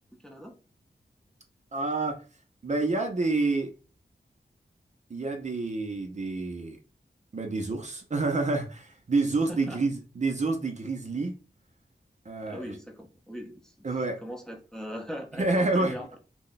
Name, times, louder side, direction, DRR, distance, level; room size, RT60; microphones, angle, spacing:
voice 1, 0.2-0.5 9.5-9.8 12.4-13.7 14.2-16.1, equal, 5° left, 0.6 m, -39 dB
voice 2, 1.7-2.2 2.6-3.7 5.1-6.8 7.3-11.4 12.3-12.7 13.8-14.2 15.4-16.0, right 3 dB, 45° right, 0.5 m, -28 dB
2.2 x 2.0 x 3.8 m
wide cardioid pair, 75°, 17 cm